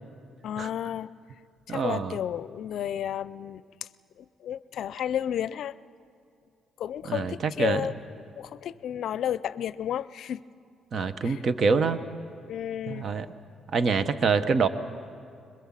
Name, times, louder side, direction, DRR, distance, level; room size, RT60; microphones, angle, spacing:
voice 1, 0.4-1.1 1.7-3.6 4.2-5.7 6.8-10.4 11.2-11.4 12.5-13.1, left 10 dB, 70° left, 17 dB, 0.5 m, -32 dB
voice 2, 1.7-2.2 7.1-7.8 10.9-12.0 12.9-13.3 13.7-14.7, right 5 dB, 50° right, 12 dB, 1.0 m, -25 dB
22.0 x 21.5 x 7.5 m, 2.4 s
cardioid pair, 90°, 0 cm